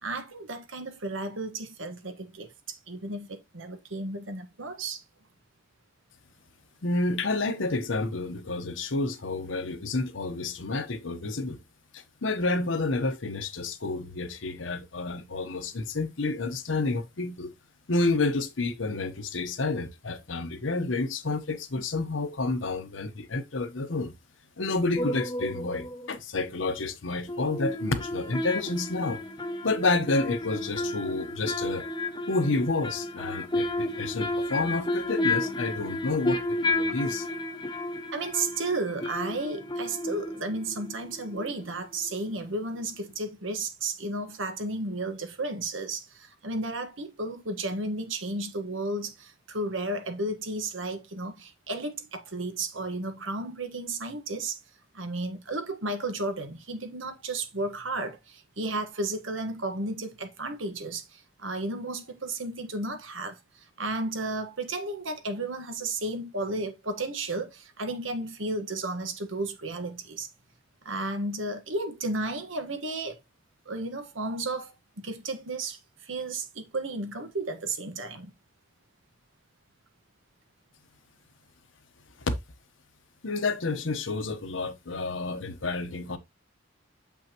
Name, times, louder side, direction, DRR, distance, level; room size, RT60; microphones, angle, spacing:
voice 1, 0.0-5.0 38.1-54.6 54.9-70.3 70.8-73.2 73.6-78.3, right 2 dB, 90° right, 1.4 m, -33 dB
voice 2, 6.8-11.6 11.9-17.5 17.9-24.1 24.6-29.2 29.6-31.9 32.3-36.4 36.7-37.3 82.3-82.4 83.2-86.2, left 3 dB, 80° left, 1.0 m, -29 dB
sound 1, 25.0-26.2 27.3-41.8 42.1-42.2, left 2 dB, 25° left, 0.8 m, -32 dB
7.1 x 5.7 x 3.0 m
head